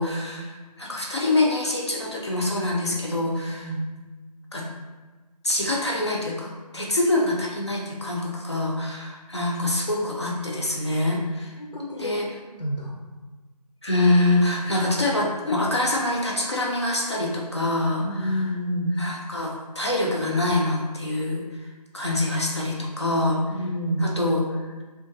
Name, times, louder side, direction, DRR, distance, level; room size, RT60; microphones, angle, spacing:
voice 1, 0.0-3.7 4.5-4.6 5.4-11.6 12.0-12.3 13.8-18.5 19.0-21.7 21.9-23.6 24.0-24.8, left 2 dB, 45° left, -2 dB, 0.4 m, -25 dB
voice 2, 3.5-3.9 6.8-6.9 11.6-12.2 12.6-13.0 18.0-19.0 23.5-24.1, equal, 85° left, -1 dB, 0.7 m, -29 dB
2.3 x 2.1 x 2.8 m, 1.3 s
figure-of-eight pair, 165°, 21 cm